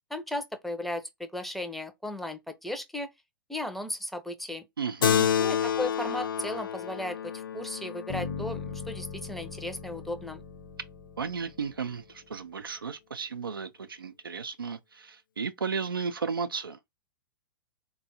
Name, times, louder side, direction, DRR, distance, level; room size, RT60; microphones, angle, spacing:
voice 1, 0.1-3.1 3.5-4.7 5.4-10.4, left 1 dB, ahead, 0.5 m, -36 dB
voice 2, 4.8-5.3 11.2-16.8, right 5 dB, 85° right, 0.4 m, -34 dB
Keyboard (musical), 5.0-9.9, left 8 dB, 70° left, 0.4 m, -30 dB
Bass guitar, 8.1-12.1, left 5 dB, 50° left, 0.8 m, -40 dB
3.8 x 2.2 x 2.7 m
figure-of-eight pair, 105°, 11 cm